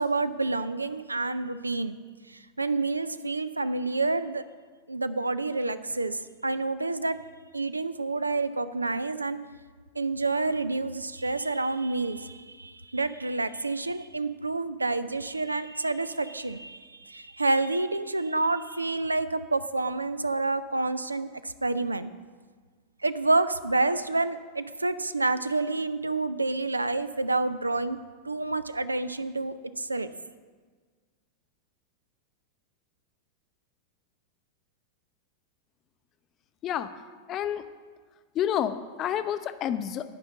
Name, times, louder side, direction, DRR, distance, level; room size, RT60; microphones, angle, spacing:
voice 1, 0.0-2.0 2.3-4.4 4.9-7.2 7.5-9.4 10.0-22.1 23.0-28.0 28.2-30.1, right 3 dB, 80° right, 14 dB, 0.4 m, -28 dB
voice 2, 37.3-37.6 38.3-40.1, left 10 dB, 30° left, 12 dB, 0.5 m, -29 dB
9.8 x 5.4 x 7.3 m, 1.5 s
figure-of-eight pair, 90°, 0 cm